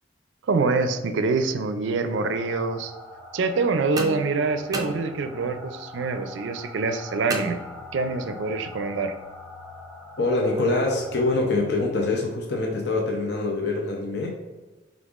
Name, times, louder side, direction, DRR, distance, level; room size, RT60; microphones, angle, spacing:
voice 1, 0.4-2.9 3.3-7.6 7.9-9.2, right 3 dB, 80° right, 9 dB, 0.4 m, -25 dB
sound 1, 2.1-11.3, left 2 dB, ahead, 1.2 m, -43 dB
sound 2, 4.0-5.6 7.3-8.3, right 2 dB, 20° right, 0.5 m, -34 dB
voice 2, 10.2-14.4, left 2 dB, 65° left, 0 dB, 0.6 m, -24 dB
5.2 x 3.5 x 2.4 m, 1.2 s
head